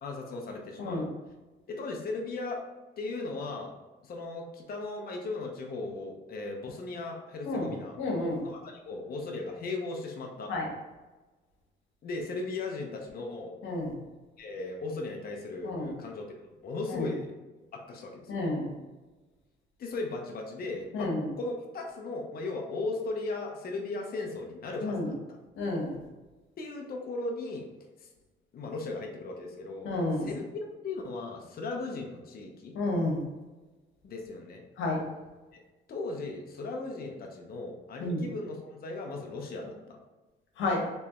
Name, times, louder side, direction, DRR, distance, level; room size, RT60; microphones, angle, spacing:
voice 1, 0.0-1.1 1.7-2.6 3.0-3.7 4.0-8.0 8.4-10.5 12.0-13.5 14.4-16.3 16.6-17.3 17.7-18.4 19.8-21.1 21.4-25.1 26.6-27.7 28.0-28.1 28.5-29.9 30.2-30.4 30.8-32.8 34.0-34.6 35.5-35.6 35.9-40.0, left 3 dB, 50° left, 1 dB, 0.7 m, -37 dB
voice 2, 0.8-1.1 7.5-7.7 8.0-8.4 10.5-10.7 13.6-13.9 15.6-16.0 16.9-17.1 18.3-18.8 20.9-21.3 24.8-25.1 25.6-26.0 29.8-30.3 32.7-33.2 34.8-35.0 38.0-38.2 40.6-40.8, left 2 dB, 80° left, -1 dB, 1.1 m, -30 dB
3.3 x 3.1 x 2.9 m, 1.2 s
cardioid pair, 90°, 20 cm